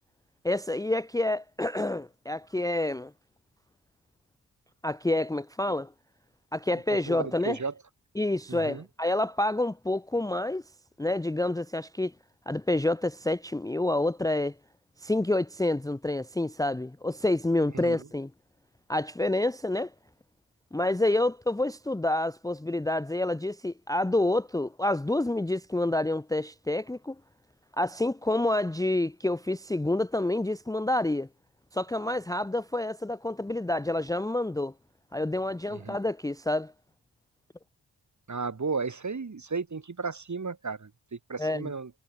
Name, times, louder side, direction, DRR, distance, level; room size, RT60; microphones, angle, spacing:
voice 1, 0.4-3.1 4.8-5.9 6.5-7.6 8.2-10.6 11.0-12.1 12.5-14.5 15.0-18.3 18.9-19.9 20.7-27.2 27.8-31.3 31.7-34.7 35.1-36.7 41.4-41.7, left 2 dB, 10° left, 0.7 m, -28 dB
voice 2, 7.1-7.7 8.5-8.8 17.7-18.0 35.7-36.0 38.3-41.9, right 4 dB, 40° right, 2.9 m, -34 dB
wide cardioid pair, 85°, 43 cm